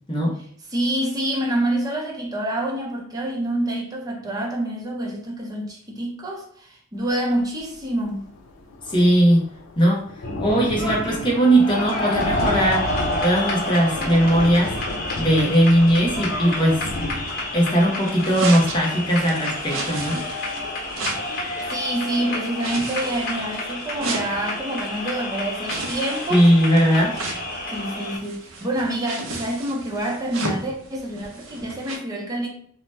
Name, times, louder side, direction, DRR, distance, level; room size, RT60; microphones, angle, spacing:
voice 1, 0.7-8.3 21.7-26.4 27.7-32.5, right 1 dB, 20° right, 0.5 m, -27 dB
Thunder, 7.7-7.8 8.1-20.7 21.2-21.3 21.6-21.7, left 2 dB, 75° left, 0.5 m, -33 dB
voice 2, 8.9-9.5 9.8-10.0 10.4-12.9 13.2-14.7 15.2-16.9 17.5-20.2 26.3-27.2, right 1 dB, 25° left, 0.6 m, -18 dB
sound 1, 10.2-28.2, left 1 dB, 50° left, 1.2 m, -30 dB
sound 2, 18.1-32.0, right 3 dB, 70° right, 0.6 m, -35 dB
2.7 x 2.1 x 3.2 m
head